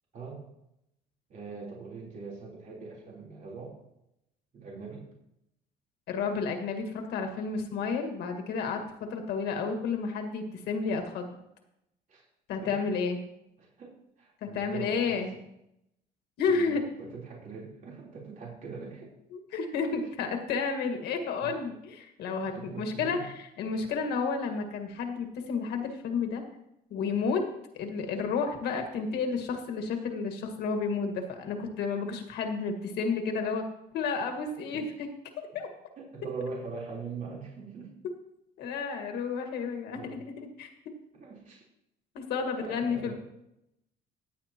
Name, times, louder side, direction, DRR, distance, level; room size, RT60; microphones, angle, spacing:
voice 1, 1.3-3.8 4.5-5.0 12.1-12.2 12.6-12.7 13.6-15.0 16.5-19.1 21.4-21.5 22.4-23.2 34.7-34.8 36.0-37.9 39.9-40.2 41.1-41.6 42.6-43.1, right 4 dB, 50° right, -4 dB, 3.7 m, -42 dB
voice 2, 6.1-11.4 12.5-13.2 14.4-15.3 16.4-16.8 19.3-26.4 26.9-27.5 27.7-33.6 33.9-35.1 35.5-35.7 38.6-40.7 42.1-43.1, left 5 dB, 75° left, 4 dB, 1.7 m, -31 dB
16.0 x 8.6 x 3.0 m, 0.82 s
cardioid pair, 110°, 17 cm